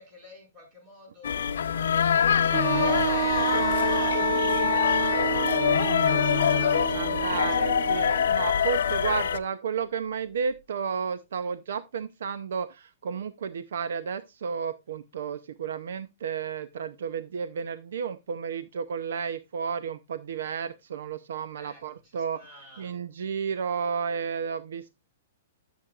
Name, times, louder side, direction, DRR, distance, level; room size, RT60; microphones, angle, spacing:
voice 1, 0.0-8.3 8.5-9.3 21.5-22.9, left 1 dB, 30° right, 5.2 m, -51 dB
sound 1, 1.2-9.4, left 8 dB, 90° left, 0.6 m, -24 dB
Wind instrument woodwind instrument, 2.5-8.3, right 12 dB, 50° right, 1.0 m, -30 dB
voice 2, 6.9-22.4 22.8-24.9, right 6 dB, 75° right, 0.6 m, -32 dB
13.0 x 7.3 x 2.4 m
hypercardioid pair, 165°, 0 cm